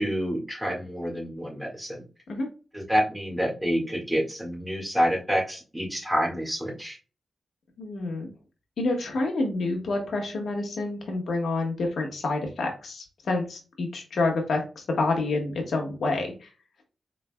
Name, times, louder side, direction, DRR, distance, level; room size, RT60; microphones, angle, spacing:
voice 1, 0.0-2.0 2.7-7.0, equal, 5° right, -1 dB, 1.7 m, -28 dB
voice 2, 7.8-8.3 8.8-16.5, left 2 dB, 75° left, 2 dB, 1.3 m, -28 dB
4.5 x 3.7 x 2.2 m, 0.34 s
cardioid pair, 80°, 0 cm